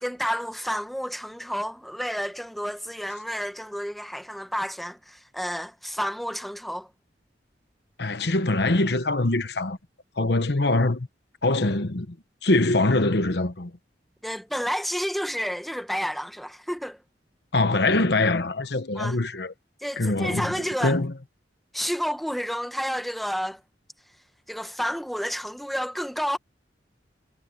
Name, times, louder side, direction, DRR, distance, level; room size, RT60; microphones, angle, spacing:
voice 1, 0.0-6.9 14.2-17.0 19.0-19.2 19.8-21.0 21.7-23.6 24.5-26.4, equal, ahead, 1.1 m, -30 dB
voice 2, 8.0-9.8 10.2-11.1 11.4-12.2 12.4-13.7 17.5-19.5 20.0-21.2, left 2 dB, 65° left, 1.1 m, -23 dB
head